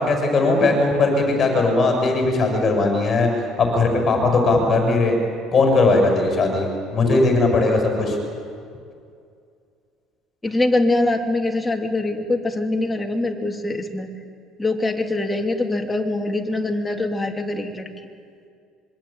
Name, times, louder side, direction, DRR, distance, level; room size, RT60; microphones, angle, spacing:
voice 1, 0.0-3.3 3.6-5.2 5.5-8.2, left 3 dB, 35° left, 3 dB, 7.2 m, -19 dB
voice 2, 10.4-14.1 14.6-17.9, left 2 dB, 10° left, 2 dB, 3.0 m, -23 dB
26.0 x 24.0 x 9.0 m, 2.3 s
cardioid pair, 130°, 0 cm